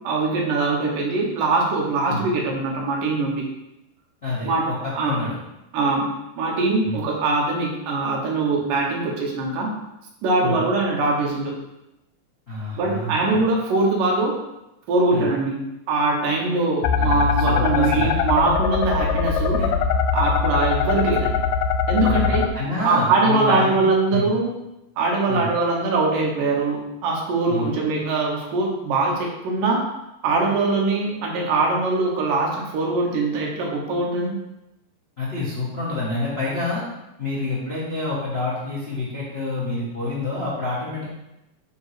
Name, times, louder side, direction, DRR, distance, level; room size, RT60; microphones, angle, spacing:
voice 1, 0.0-3.5 4.4-5.2 5.7-9.7 10.2-11.6 12.8-14.4 14.9-15.6 15.9-19.6 20.1-21.4 21.9-22.5 22.8-24.5 25.0-29.9 30.2-34.3, right 3 dB, 75° right, -1 dB, 2.8 m, -22 dB
voice 2, 4.2-5.3 6.8-7.0 10.4-10.6 12.5-13.1 15.1-15.3 16.9-18.1 19.6-19.7 22.1-22.3 22.5-24.3 25.3-25.5 27.5-27.7 35.2-36.8 37.2-41.1, left 2 dB, 65° left, -8 dB, 0.6 m, -27 dB
sound 1, 16.8-22.5, left 6 dB, 85° left, 1.8 m, -21 dB
9.1 x 3.1 x 4.9 m, 0.91 s
omnidirectional pair, 4.0 m